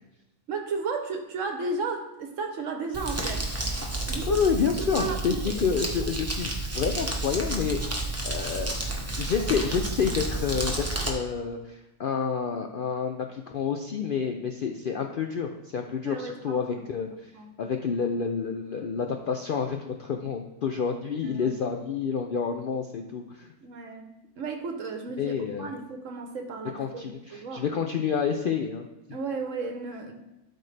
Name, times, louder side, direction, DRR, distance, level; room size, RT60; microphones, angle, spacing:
voice 1, 0.5-3.5 4.1-4.4 4.8-5.7 16.0-16.8 17.3-17.5 21.2-21.6 23.6-24.1 24.4-27.6 29.1-30.1, right 4 dB, 65° right, 4 dB, 1.1 m, -34 dB
Crumpling crinkling, 2.9-11.1, right 2 dB, 15° right, 0.8 m, -31 dB
voice 2, 4.3-8.7 9.2-17.3 17.6-23.5 25.2-25.7 26.7-28.8, left 6 dB, 75° left, 4 dB, 0.4 m, -29 dB
12.0 x 4.3 x 3.3 m, 0.98 s
omnidirectional pair, 1.5 m